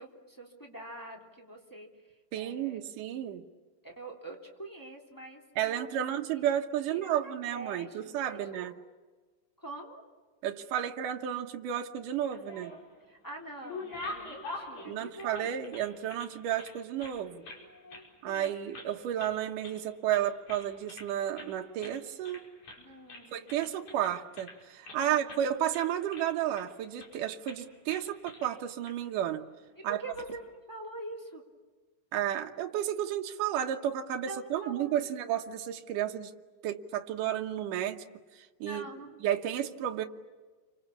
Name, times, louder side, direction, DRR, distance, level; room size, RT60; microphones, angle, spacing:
voice 1, 0.0-1.9 2.3-2.8 3.8-6.5 6.9-8.8 9.6-10.0 13.1-15.5 17.4-18.5 22.7-23.7 24.9-25.4 29.8-31.4 34.3-35.0 38.6-39.2, right 2 dB, 5° left, -1 dB, 2.7 m, -45 dB
voice 2, 2.3-3.4 5.6-8.7 10.4-12.7 14.9-17.4 18.2-22.4 23.3-29.4 29.8-30.0 32.1-36.3 36.6-38.0 38.3-38.8 39.2-40.1, right 10 dB, 75° right, 4 dB, 2.7 m, -32 dB
sound 1, 12.2-13.0 13.4-16.3 16.6-17.6 17.9-18.1 18.3-18.9 19.2-19.8 20.1-21.1 21.4-21.5 21.8-22.0 22.2-22.8 23.1-25.0 25.3-25.5 25.7-26.7 27.0-27.2 27.5-27.6 27.9-28.5 28.9-29.0 29.9-30.3, left 2 dB, 60° left, 6.6 m, -44 dB
30.0 x 25.0 x 7.2 m, 1.3 s
omnidirectional pair, 3.8 m